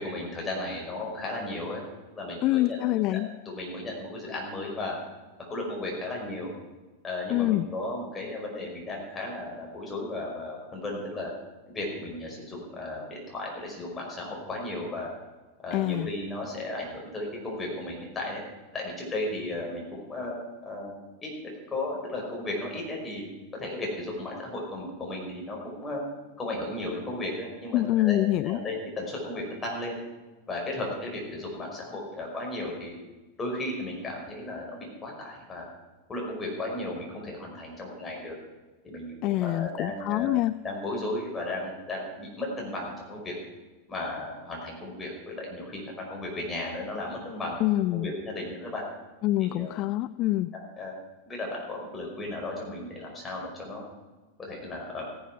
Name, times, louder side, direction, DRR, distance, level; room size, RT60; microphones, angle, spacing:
voice 1, 0.0-1.8 2.1-2.8 3.1-3.2 3.5-5.0 5.4-6.5 7.0-11.3 11.7-15.1 15.6-18.4 18.7-20.3 20.6-20.9 21.2-23.2 23.5-26.0 26.4-30.0 30.5-32.9 33.4-35.6 36.1-38.3 38.8-39.1 39.4-40.3 40.6-43.3 43.9-45.8 46.1-48.8 49.4-49.7 50.5-50.9 51.3-53.8 54.4-55.0, left 2 dB, 15° left, -2 dB, 5.4 m, -35 dB
voice 2, 2.4-3.3 7.3-7.6 15.7-16.1 27.7-28.6 39.2-40.5 47.6-48.1 49.2-50.5, left 16 dB, 40° left, 15 dB, 0.3 m, -25 dB
15.5 x 11.0 x 6.2 m, 1.2 s
figure-of-eight pair, 90°, 0 cm